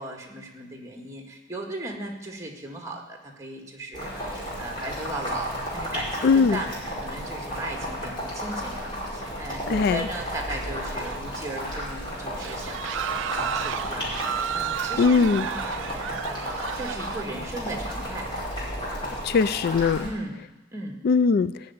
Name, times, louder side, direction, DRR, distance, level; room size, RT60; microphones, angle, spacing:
voice 1, 0.0-14.1 14.5-15.8 16.1-18.4 20.0-20.4 20.7-21.0, right 1 dB, 15° right, 1 dB, 1.9 m, -37 dB
Boiling, 3.9-20.1, equal, 25° left, 5.0 m, -33 dB
voice 2, 6.2-6.6 9.7-10.0 15.0-15.5 19.2-20.1 21.0-21.5, left 5 dB, 55° left, 15 dB, 0.3 m, -20 dB
sound 1, 10.6-11.5 11.8-11.9 12.4-17.2, right 10 dB, 65° right, 0.3 m, -33 dB
15.0 x 5.8 x 9.4 m, 1.1 s
head